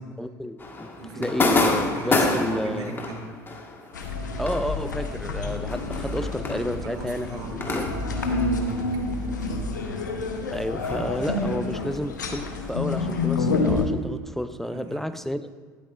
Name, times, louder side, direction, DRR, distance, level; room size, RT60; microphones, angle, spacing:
voice 1, 0.2-3.0 4.4-7.9 10.5-15.5, equal, 5° left, 12 dB, 0.4 m, -31 dB
sound 1, 0.6-9.6 9.8-13.4, left 3 dB, 20° left, 1.5 m, -30 dB
voice 2, 1.0-3.3 5.8-5.9 6.8-9.8 14.7-15.0, right 2 dB, 45° right, -1 dB, 3.1 m, -37 dB
sound 2, 3.9-13.9, left 3 dB, 80° left, 1.0 m, -28 dB
12.5 x 10.0 x 2.5 m, 1.5 s
figure-of-eight pair, 70°, 10 cm